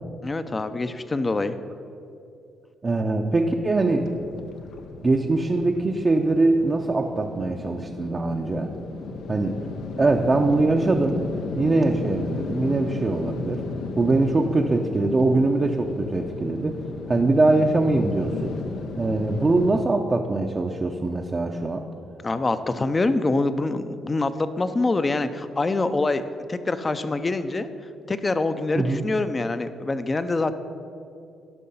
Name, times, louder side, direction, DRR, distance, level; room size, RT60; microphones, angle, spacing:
voice 1, 0.2-1.6 22.2-26.2 26.5-27.7 28.1-30.5, left 2 dB, 25° left, 11 dB, 0.5 m, -25 dB
voice 2, 2.8-4.1 5.0-8.7 9.3-9.6 10.0-11.2 11.6-13.6 14.0-16.8 17.1-18.5 19.0-21.8 28.8-29.0, right 2 dB, 30° right, 1 dB, 0.6 m, -22 dB
sound 1, 4.0-19.8, left 4 dB, 75° left, 0.6 m, -34 dB
12.5 x 5.6 x 5.6 m, 2.6 s
cardioid pair, 90°, 0 cm